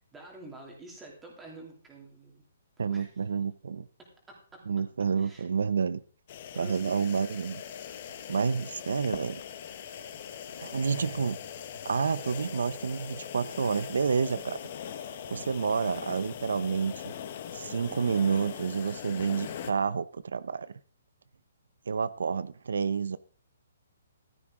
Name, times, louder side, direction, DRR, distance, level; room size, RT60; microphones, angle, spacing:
voice 1, 0.1-2.5 2.9-3.1 4.3-4.6 5.2-5.5 6.5-7.1 8.4-8.5, right 2 dB, 5° right, 2.9 m, -48 dB
voice 2, 2.8-3.9 4.7-6.0 6.5-7.6 8.3-9.4 10.6-11.4 11.8-14.6 15.1-17.1 17.5-20.7 21.9-23.2, right 5 dB, 80° right, 0.7 m, -29 dB
sound 1, 6.3-19.7, left 9 dB, 30° left, 1.1 m, -41 dB
15.0 x 12.5 x 3.8 m
hypercardioid pair, 175°, 0 cm